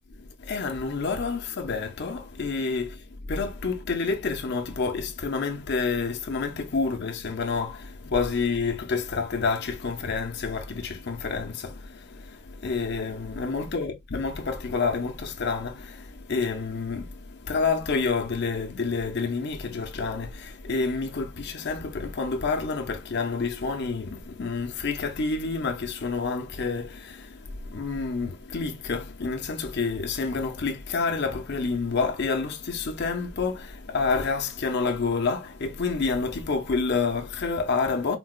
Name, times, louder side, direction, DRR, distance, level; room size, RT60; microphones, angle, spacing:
voice 1, 0.1-38.2, left 4 dB, 50° left, 0.6 m, -29 dB
3.9 x 2.2 x 2.3 m
head